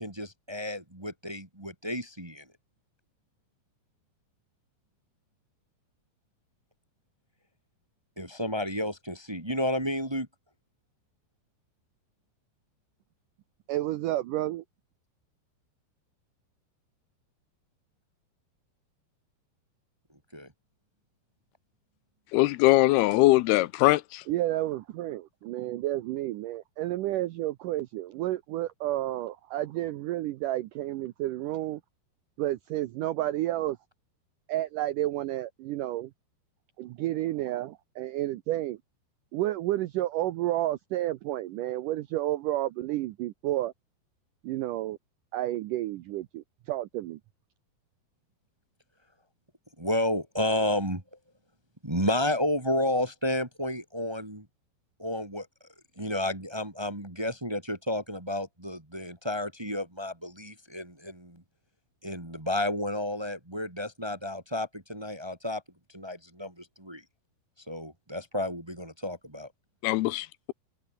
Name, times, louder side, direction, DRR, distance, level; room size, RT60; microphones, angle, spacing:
voice 1, 0.0-2.4 8.2-10.3 20.3-20.5 49.8-51.0 51.8-54.5 55.0-55.5 56.0-61.4 62.0-65.6 65.9-67.0 67.7-69.5, left 1 dB, 10° right, 1.1 m, -31 dB
voice 2, 13.7-14.6 24.3-31.8 32.4-33.8 34.5-36.1 36.8-38.8 39.3-43.7 44.4-45.0 45.3-47.2, right 15 dB, 85° right, 1.9 m, -31 dB
voice 3, 22.3-24.2 69.8-70.5, left 18 dB, 85° left, 2.6 m, -22 dB
omnidirectional pair, 4.7 m